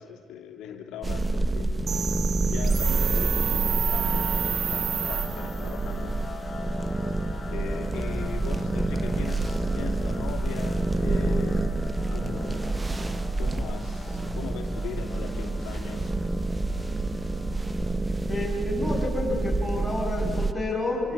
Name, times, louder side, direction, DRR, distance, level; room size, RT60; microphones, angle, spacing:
voice 1, 0.0-1.9 2.5-6.2 7.5-11.7 12.1-13.0 13.4-16.2, left 7 dB, 85° left, 3 dB, 2.8 m, -39 dB
sound 1, 1.0-20.5, right 2 dB, 15° right, 1.1 m, -28 dB
sound 2, 1.9-5.7, right 8 dB, 55° right, 2.1 m, -30 dB
sound 3, 3.9-18.1, left 3 dB, 20° left, 7.1 m, -44 dB
voice 2, 18.3-21.1, left 2 dB, 5° left, -2 dB, 7.7 m, -29 dB
25.5 x 25.0 x 8.7 m, 2.2 s
cardioid pair, 105°, 0 cm